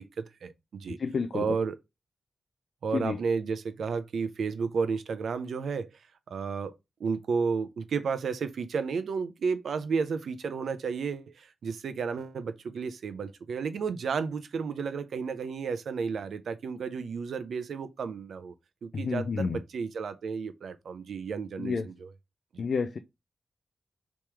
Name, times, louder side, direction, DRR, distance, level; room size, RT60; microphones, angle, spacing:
voice 1, 0.0-1.0 1.3-1.8 2.8-5.9 6.3-18.5 18.8-22.1 22.5-22.7, right 5 dB, 90° right, 0.5 m, -32 dB
voice 2, 1.0-1.5 2.9-3.2 18.9-19.6 21.6-21.9 22.6-23.0, left 5 dB, 65° left, 0.4 m, -30 dB
3.5 x 3.0 x 4.6 m
wide cardioid pair, 105°, 0 cm